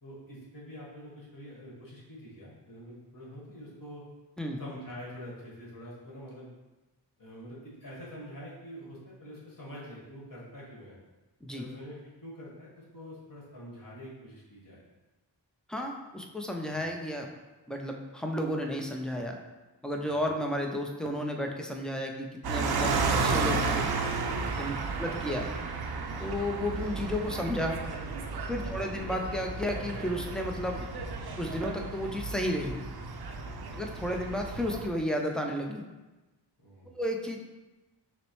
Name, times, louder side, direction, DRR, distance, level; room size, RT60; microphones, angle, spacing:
voice 1, 0.0-4.0 4.6-6.5 7.2-11.0 11.5-14.8 20.1-20.2 24.7-25.0 33.4-33.7 36.6-37.0, equal, 50° left, -6 dB, 1.5 m, -46 dB
voice 2, 15.7-17.3 17.7-19.4 19.8-23.9 24.6-24.7 25.0-25.5 26.2-27.8 28.5-30.9 31.4-32.8 33.7-35.8 37.0-37.4, equal, ahead, 2 dB, 0.4 m, -32 dB
sound 1, 22.4-34.9, right 4 dB, 60° right, 0.5 m, -33 dB
6.0 x 2.0 x 3.1 m, 1.1 s
wide cardioid pair, 70°, 43 cm